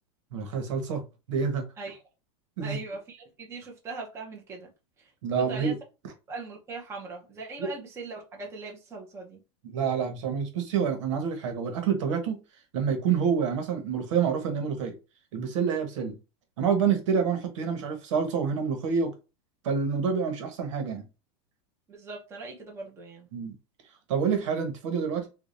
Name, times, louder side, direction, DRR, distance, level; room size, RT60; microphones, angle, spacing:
voice 1, 0.3-1.6 2.6-2.8 5.2-5.7 7.6-7.7 9.6-12.4 12.7-14.9 15.3-16.2 16.6-19.1 19.6-21.0 23.3-23.5 24.1-25.3, right 6 dB, 80° right, 1.2 m, -27 dB
voice 2, 2.6-4.7 5.0-5.7 6.3-9.4 21.9-23.3, right 3 dB, 15° right, 0.9 m, -40 dB
4.9 x 2.4 x 2.6 m
supercardioid pair, 160°, 15 cm